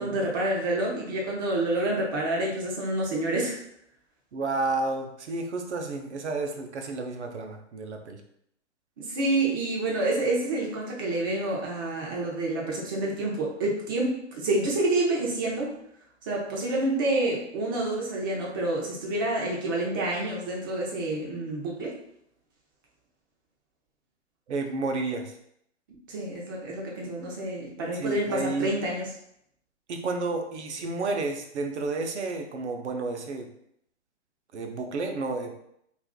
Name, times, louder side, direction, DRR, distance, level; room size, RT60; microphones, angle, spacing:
voice 1, 0.0-3.5 9.0-15.7 16.3-22.0 26.1-29.1, right 2 dB, 20° right, -2 dB, 0.4 m, -28 dB
voice 2, 4.3-8.2 24.5-25.3 27.9-28.7 29.9-33.5 34.5-35.5, right 3 dB, 70° right, 4 dB, 0.7 m, -31 dB
2.5 x 2.5 x 3.6 m, 0.73 s
hypercardioid pair, 130°, 36 cm